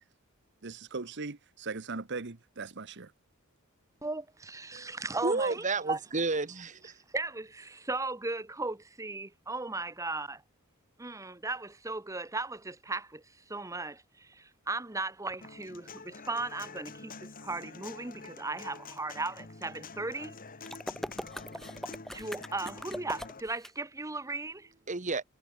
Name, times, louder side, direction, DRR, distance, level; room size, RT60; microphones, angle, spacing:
voice 1, 0.6-3.1, right 4 dB, 55° right, 1.2 m, -39 dB
voice 2, 4.0-6.0 7.1-10.4 11.0-20.3 22.1-24.7, right 3 dB, 15° right, 1.1 m, -37 dB
voice 3, 5.2-6.9 24.9-25.2, right 3 dB, 35° right, 1.4 m, -31 dB
Human voice / Acoustic guitar, 15.4-23.4, left 4 dB, 40° left, 1.8 m, -47 dB
sound 1, 20.7-23.7, equal, ahead, 3.2 m, -40 dB
head